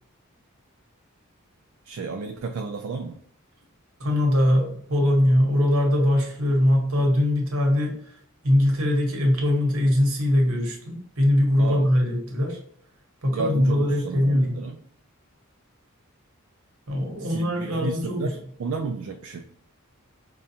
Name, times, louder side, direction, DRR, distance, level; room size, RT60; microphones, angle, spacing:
voice 1, 1.8-3.2 11.6-11.9 13.3-14.8 17.2-19.5, right 4 dB, 65° right, 4 dB, 0.3 m, -32 dB
voice 2, 4.0-8.2 8.4-12.6 13.2-14.6 16.9-18.3, left 1 dB, 85° right, 1 dB, 1.1 m, -22 dB
4.9 x 2.3 x 2.7 m, 0.65 s
head